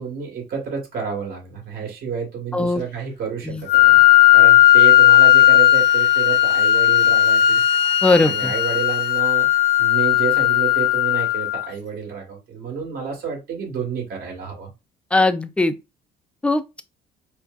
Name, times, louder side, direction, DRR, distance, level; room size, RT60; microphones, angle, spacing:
voice 1, 0.0-4.0 4.3-7.6 8.2-9.5 9.8-14.7, right 6 dB, 60° right, 2.3 m, -30 dB
Wind instrument woodwind instrument, 3.7-11.6, left 12 dB, 80° left, 0.8 m, -15 dB
voice 2, 8.0-8.5 15.1-15.7 16.4-16.8, left 2 dB, 5° left, 0.4 m, -19 dB
4.6 x 2.2 x 3.9 m
cardioid pair, 110°, 17 cm